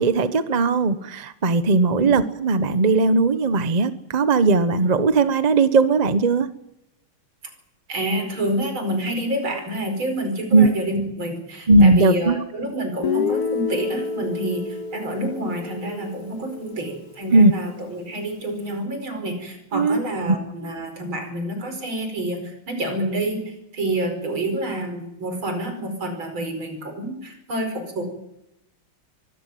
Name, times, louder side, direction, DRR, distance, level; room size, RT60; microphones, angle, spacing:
voice 1, 0.0-6.5 10.5-10.7 11.7-12.4 17.3-17.5 19.7-20.0, right 3 dB, 35° right, 12 dB, 0.7 m, -18 dB
voice 2, 7.9-28.1, right 1 dB, 65° right, 6 dB, 5.7 m, -28 dB
Guitar, 13.0-17.0, left 5 dB, 50° left, 1.7 m, -28 dB
24.0 x 14.5 x 9.2 m, 0.85 s
omnidirectional pair, 2.3 m